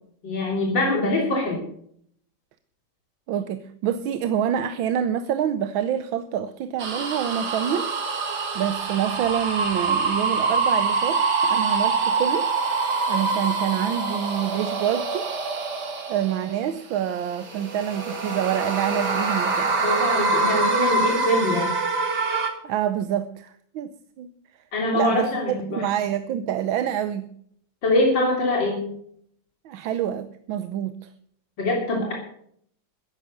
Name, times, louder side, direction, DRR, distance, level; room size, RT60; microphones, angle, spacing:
voice 1, 0.2-1.6 19.8-21.7 24.7-25.9 27.8-28.8 31.6-32.1, left 1 dB, 65° left, 3.8 m, -23 dB
voice 2, 3.3-7.9 8.5-12.5 13.1-15.3 16.1-19.7 22.6-24.3 24.9-27.3 29.6-31.1, right 10 dB, 85° right, 1.5 m, -27 dB
sound 1, 6.8-16.7 17.2-22.5, right 3 dB, 55° right, 2.5 m, -25 dB
15.0 x 10.5 x 6.6 m
omnidirectional pair, 2.1 m